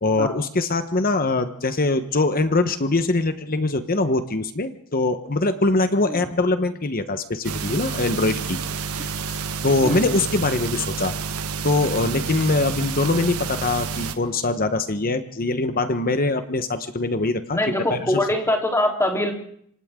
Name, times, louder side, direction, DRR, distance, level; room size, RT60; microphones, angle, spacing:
voice 1, 0.0-8.6 8.9-9.4 9.6-11.1 11.6-17.6 17.9-18.2, left 2 dB, 40° left, 9 dB, 1.2 m, -23 dB
sound 1, 7.4-14.2, right 5 dB, 80° right, 1.7 m, -29 dB
voice 2, 9.8-10.2 17.5-19.3, left 1 dB, 10° left, 1 dB, 3.7 m, -23 dB
27.0 x 25.5 x 3.8 m, 0.67 s
head